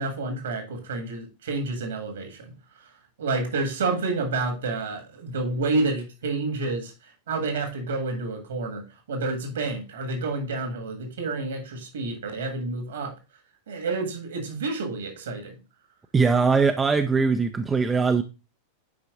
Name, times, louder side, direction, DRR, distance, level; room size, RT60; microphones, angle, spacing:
voice 1, 0.0-2.5 3.2-6.9 7.3-13.1 13.7-15.6, right 3 dB, 60° right, 1.6 m, -29 dB
voice 2, 16.1-18.2, right 4 dB, 15° right, 0.5 m, -21 dB
9.5 x 4.9 x 2.4 m
figure-of-eight pair, 90°, 0 cm